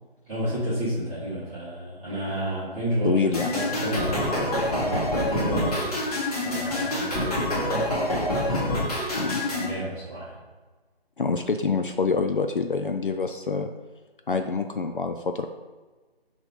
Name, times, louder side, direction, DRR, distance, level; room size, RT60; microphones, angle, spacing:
voice 1, 0.3-5.8 6.4-7.4 8.4-9.0 9.5-10.3, right 1 dB, 5° right, -14 dB, 1.0 m, -31 dB
voice 2, 3.0-3.5 9.1-9.4 11.2-13.7 14.3-15.5, left 4 dB, 55° left, 5 dB, 0.5 m, -26 dB
sound 1, 3.3-9.7, left 1 dB, 35° left, 1.5 m, -26 dB
6.2 x 3.1 x 5.2 m, 1.3 s
figure-of-eight pair, 160°, 31 cm